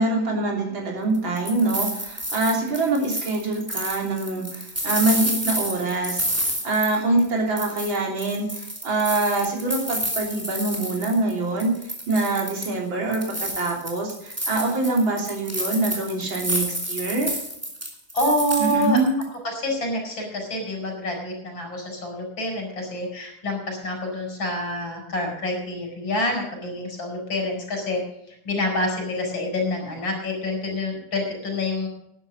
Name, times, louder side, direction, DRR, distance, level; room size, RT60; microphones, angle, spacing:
voice 1, 0.0-11.7 12.1-17.4 18.6-19.1, right 2 dB, 80° right, -1 dB, 3.9 m, -24 dB
sound 1, 1.1-7.3 7.6-11.3 11.6-12.8 13.1-19.2, equal, 5° right, 2.9 m, -30 dB
voice 2, 18.1-19.0 19.4-28.0 28.5-31.9, left 1 dB, 80° left, 2 dB, 5.3 m, -27 dB
12.0 x 10.5 x 6.4 m, 0.78 s
omnidirectional pair, 2.1 m